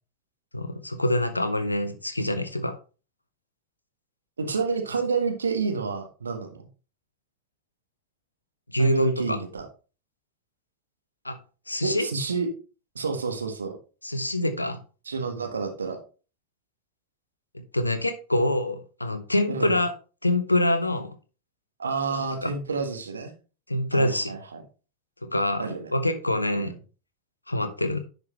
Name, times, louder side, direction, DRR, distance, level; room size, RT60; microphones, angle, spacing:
voice 1, 0.5-2.8 8.7-9.4 11.2-11.4 11.7-12.1 14.0-14.8 17.5-19.9 20.2-21.2 22.4-22.5 23.7-24.3 25.2-26.7 27.5-28.0, left 1 dB, 85° left, 10 dB, 0.9 m, -25 dB
voice 2, 4.4-6.6 8.8-9.6 11.8-12.5 12.9-13.7 15.0-16.0 19.5-19.7 21.8-23.3 23.9-24.6 25.6-25.9 26.6-26.8, right 4 dB, 75° right, 5 dB, 1.5 m, -29 dB
10.5 x 5.3 x 3.2 m, 0.34 s
figure-of-eight pair, 90°, 0 cm